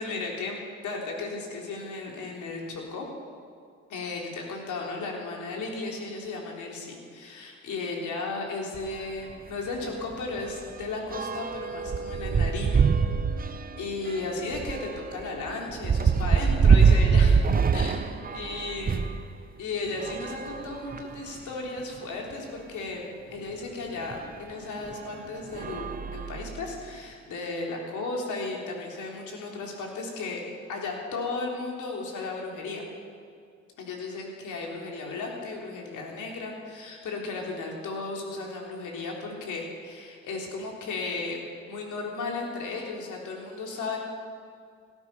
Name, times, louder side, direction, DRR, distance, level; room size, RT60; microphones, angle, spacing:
voice 1, 0.0-3.1 3.9-12.9 13.4-17.4 17.7-19.1 19.6-30.4 30.7-32.8 33.8-44.0, left 3 dB, 75° left, 0 dB, 3.5 m, -35 dB
sound 1, 8.7-8.9 9.3-9.5 9.7-19.2 19.9-21.3 22.0-22.1 22.3-22.4 24.1-24.2 24.9-25.1 25.5-26.8, right 5 dB, 30° right, 0.8 m, -25 dB
17.5 x 12.5 x 5.5 m, 2.2 s
cardioid pair, 90°, 30 cm